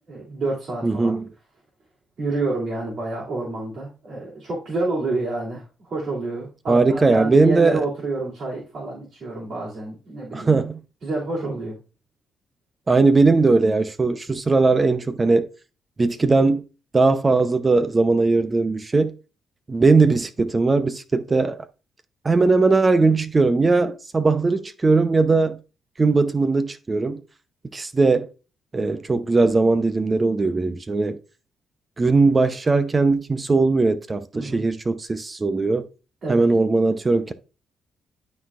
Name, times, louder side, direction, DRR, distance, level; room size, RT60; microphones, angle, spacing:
voice 1, 0.1-1.1 2.2-10.6 11.0-11.8 34.3-34.6 36.2-36.5, right 2 dB, 55° right, 3.0 m, -28 dB
voice 2, 0.8-1.2 6.7-7.8 10.3-10.8 12.9-15.5 16.0-16.6 16.9-19.1 19.7-21.6 22.2-25.6 26.0-27.2 27.7-28.3 28.7-31.2 32.0-35.9 36.3-37.3, right 3 dB, 30° right, 0.7 m, -19 dB
11.5 x 4.1 x 2.4 m
cardioid pair, 70°, 0 cm